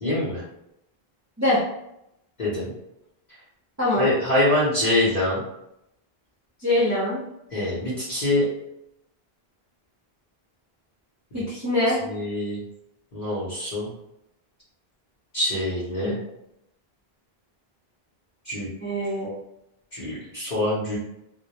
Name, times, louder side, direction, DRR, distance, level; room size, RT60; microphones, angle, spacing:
voice 1, 0.0-0.4 2.4-2.7 4.0-5.4 7.5-8.4 12.1-12.6 13.1-13.9 15.3-16.2 18.5-18.7 19.9-21.0, left 1 dB, 50° left, -9 dB, 0.8 m, -24 dB
voice 2, 3.8-4.1 6.6-7.2 11.3-12.0 16.0-16.1 18.8-19.3, left 1 dB, 20° right, -8 dB, 0.5 m, -23 dB
2.1 x 2.1 x 2.8 m, 0.82 s
omnidirectional pair, 1.0 m